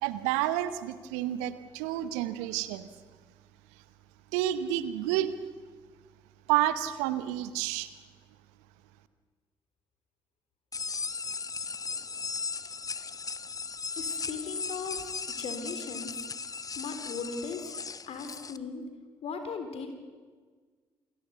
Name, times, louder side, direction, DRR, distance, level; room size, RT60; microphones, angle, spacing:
voice 1, 0.0-2.9 4.3-5.3 6.5-7.9, right 13 dB, 70° right, 13 dB, 1.0 m, -29 dB
sound 1, 10.7-18.6, left 5 dB, 30° left, 1.0 m, -37 dB
voice 2, 14.0-15.1 15.4-16.1 16.8-17.6 18.1-18.8 19.2-19.9, left 5 dB, 55° left, 7 dB, 3.5 m, -37 dB
28.5 x 18.5 x 7.0 m, 1.5 s
figure-of-eight pair, 45°, 12 cm